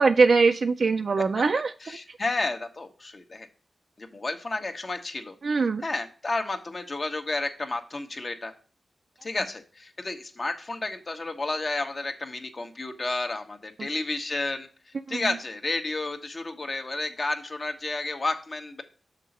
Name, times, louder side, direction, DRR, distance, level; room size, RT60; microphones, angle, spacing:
voice 1, 0.0-1.7 5.4-5.8, right 4 dB, 65° right, 5 dB, 0.4 m, -21 dB
voice 2, 1.8-3.5 4.0-5.3 5.8-8.5 9.2-14.7 15.1-18.8, left 2 dB, 50° left, 5 dB, 1.2 m, -31 dB
6.5 x 4.0 x 5.4 m, 0.39 s
cardioid pair, 50°, 0 cm